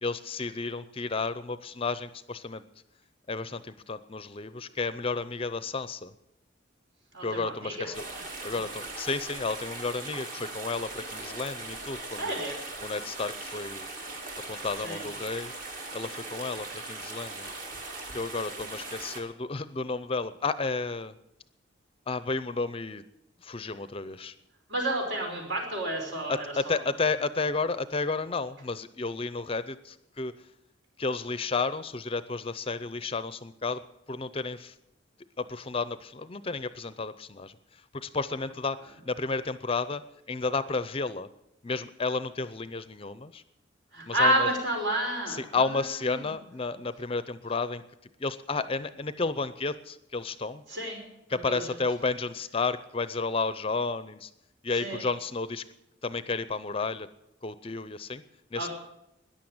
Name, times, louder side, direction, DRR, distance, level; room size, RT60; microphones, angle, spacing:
voice 1, 0.0-2.6 3.3-6.1 7.2-8.0 8.4-12.4 12.8-13.9 14.5-15.5 15.9-17.5 18.1-21.1 22.1-23.0 23.4-24.3 26.3-30.3 31.0-33.8 34.1-34.7 35.4-40.0 40.3-41.3 41.6-43.4 44.1-44.5 45.3-47.8 48.2-50.6 51.3-54.3 54.6-55.6 56.0-57.1 57.4-58.2 58.5-58.7, left 4 dB, 30° left, 14 dB, 0.6 m, -32 dB
voice 2, 7.1-7.9 8.5-8.6 12.2-12.6 14.8-15.0 24.7-26.8 43.9-45.8 46.1-46.3 50.7-51.0 51.3-51.8 54.8-55.1 58.5-58.7, right 1 dB, 65° right, 1 dB, 5.3 m, -30 dB
sound 1, 7.9-19.2, right 2 dB, 45° right, 2.7 m, -40 dB
14.0 x 10.5 x 8.8 m, 0.85 s
head